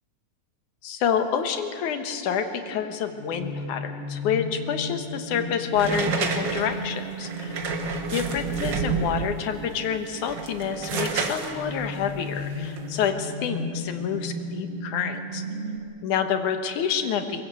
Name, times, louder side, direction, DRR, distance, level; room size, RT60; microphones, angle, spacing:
voice 1, 0.8-7.6 8.1-15.4 16.0-17.4, left 7 dB, 85° left, 7 dB, 2.8 m, -28 dB
sound 1, 2.7-15.8, left 1 dB, 20° right, 2.2 m, -35 dB
sound 2, 5.7-9.4 10.1-13.1, right 5 dB, 45° right, 1.7 m, -30 dB
22.5 x 22.5 x 7.8 m, 2.4 s
omnidirectional pair, 3.4 m